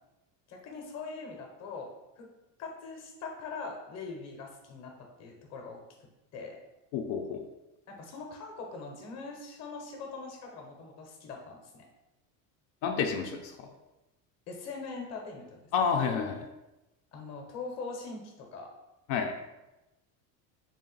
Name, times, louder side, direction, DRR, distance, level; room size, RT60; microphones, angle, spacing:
voice 1, 0.5-2.3 2.6-6.6 7.9-11.9 14.5-15.6 17.1-18.7, left 4 dB, 35° left, 1 dB, 0.7 m, -42 dB
voice 2, 6.9-7.4 12.8-13.7 15.7-16.5 19.1-19.5, left 6 dB, 80° left, 3 dB, 0.6 m, -30 dB
3.6 x 2.5 x 3.8 m, 0.98 s
cardioid pair, 155°, 44 cm